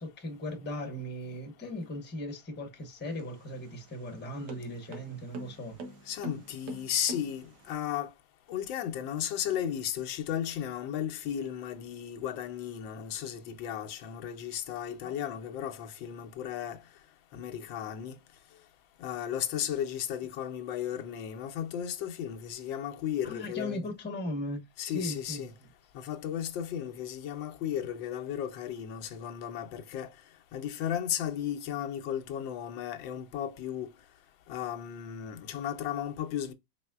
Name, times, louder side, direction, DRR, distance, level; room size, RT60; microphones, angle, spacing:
voice 1, 0.0-5.8 15.0-15.1 23.2-25.4, left 1 dB, 10° left, 0.7 m, -38 dB
sound 1, 3.0-7.7, right 2 dB, 65° right, 1.5 m, -45 dB
voice 2, 6.1-8.1 8.5-16.8 17.3-18.2 19.0-23.9 24.8-25.6 25.9-30.1 30.5-33.9 34.5-36.5, left 10 dB, 90° left, 1.5 m, -35 dB
5.0 x 3.3 x 2.3 m
omnidirectional pair, 2.0 m